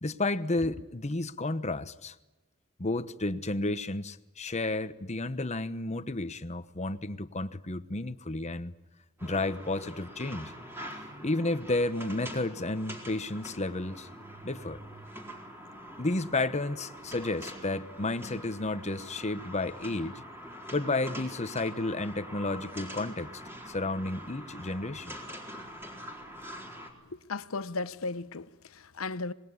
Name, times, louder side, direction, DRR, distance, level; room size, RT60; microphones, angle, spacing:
voice 1, 0.0-2.1 2.8-8.7 9.2-10.5 11.0-14.1 14.4-14.8 16.0-20.2 20.7-23.4 23.7-25.2, left 2 dB, 30° left, 1.1 m, -32 dB
sound 1, 9.2-26.9, equal, 10° right, 4.2 m, -44 dB
voice 2, 27.1-29.3, left 3 dB, 75° left, 1.0 m, -36 dB
26.0 x 21.0 x 9.7 m
head